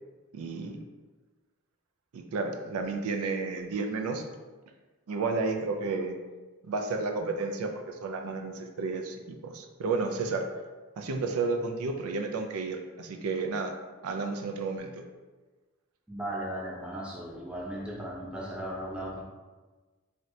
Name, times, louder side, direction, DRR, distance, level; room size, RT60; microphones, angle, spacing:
voice 1, 0.3-0.8 2.1-4.2 5.1-6.2 6.7-9.2 9.4-10.5 11.0-13.7 14.0-15.0, right 3 dB, 90° right, 5 dB, 0.4 m, -32 dB
voice 2, 16.1-19.2, right 1 dB, 5° right, -3 dB, 0.4 m, -36 dB
3.1 x 2.7 x 2.6 m, 1.3 s
head